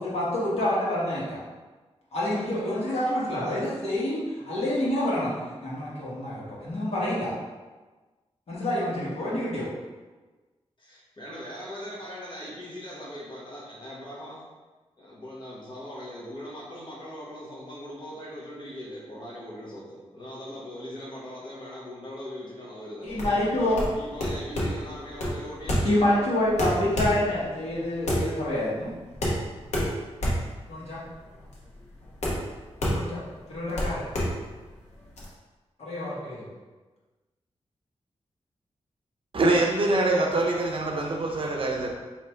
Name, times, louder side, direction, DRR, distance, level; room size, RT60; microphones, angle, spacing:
voice 1, 0.0-1.4 2.1-5.3 5.6-7.3 8.5-9.7 23.0-23.8 25.8-28.9 30.7-31.0 32.9-33.2 33.5-34.0 35.8-36.5, left 1 dB, 65° left, 1.5 m, -27 dB
voice 2, 10.8-14.4 15.0-23.3 24.0-26.0, equal, 45° left, 1.3 m, -40 dB
sound 1, 23.1-35.2, equal, 80° left, 1.0 m, -29 dB
voice 3, 39.3-41.9, right 2 dB, 50° right, 0.6 m, -24 dB
3.4 x 2.8 x 4.4 m
wide cardioid pair, 150°, 11 cm